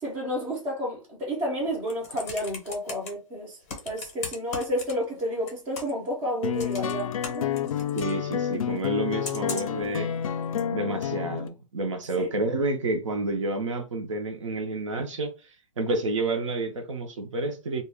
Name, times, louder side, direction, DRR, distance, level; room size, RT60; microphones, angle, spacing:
voice 1, 0.0-3.6 3.8-7.5 12.2-12.3, equal, 10° right, 0.4 m, -31 dB
Computer keyboard, 1.7-3.1 3.7-5.2 5.5-6.1 6.6-8.1 9.2-9.8 10.6-10.7, left 4 dB, 30° left, 0.6 m, -37 dB
sound 1, 6.4-11.5, left 9 dB, 80° left, 0.4 m, -29 dB
voice 2, 7.9-10.1 10.7-15.3 15.8-17.8, right 2 dB, 65° right, 0.6 m, -29 dB
2.2 x 2.1 x 3.3 m
hypercardioid pair, 170°, 17 cm